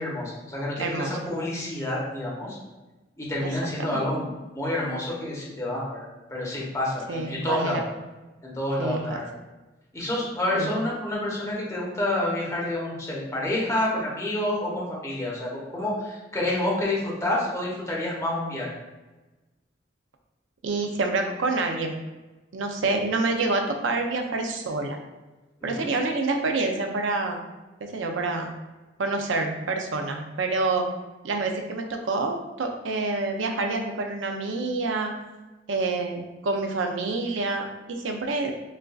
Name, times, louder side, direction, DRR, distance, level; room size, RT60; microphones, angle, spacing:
voice 1, 0.0-2.6 3.2-4.3 4.5-6.0 6.3-7.8 8.4-9.3 9.9-18.7 25.6-25.9, left 1 dB, 15° left, -5 dB, 1.0 m, -28 dB
voice 2, 0.8-1.3 3.4-3.5 3.8-4.2 7.1-7.9 8.8-9.2 10.5-10.7 20.6-22.0 22.5-25.0 25.6-27.4 27.8-28.5 29.0-30.9 31.2-35.1 35.7-38.5, right 3 dB, 90° right, 4 dB, 0.5 m, -27 dB
5.4 x 2.6 x 2.3 m, 1.1 s
head